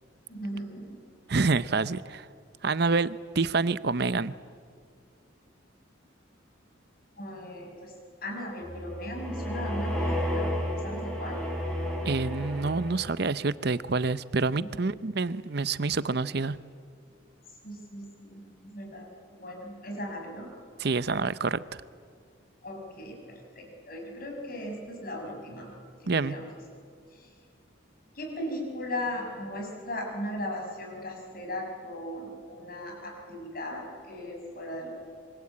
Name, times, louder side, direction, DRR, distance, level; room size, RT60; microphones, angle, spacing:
voice 1, 0.3-1.0 7.2-11.4 14.6-14.7 17.6-20.5 22.6-25.7 26.0-26.5 27.1-27.3 28.1-34.9, left 1 dB, 50° left, 2 dB, 6.5 m, -38 dB
voice 2, 1.3-2.3 2.6-4.3 12.1-16.6 20.8-21.8 26.1-26.3, right 4 dB, 55° right, 16 dB, 0.7 m, -27 dB
sound 1, 8.6-13.3, equal, 5° left, 6.8 m, -32 dB
26.0 x 24.5 x 8.7 m, 2.1 s
head